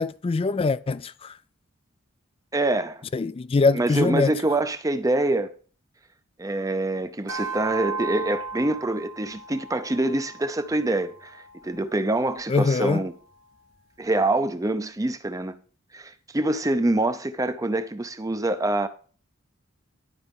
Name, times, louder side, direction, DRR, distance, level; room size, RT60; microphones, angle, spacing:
voice 1, 0.0-1.3 3.1-4.3 12.5-13.0, left 4 dB, 30° left, 0.4 m, -23 dB
voice 2, 2.5-3.0 3.7-5.5 6.4-13.1 14.0-15.5 15.9-18.9, right 2 dB, 15° right, 0.6 m, -25 dB
sound 1, 7.3-11.9, right 4 dB, 75° right, 1.3 m, -36 dB
11.5 x 4.3 x 5.3 m
head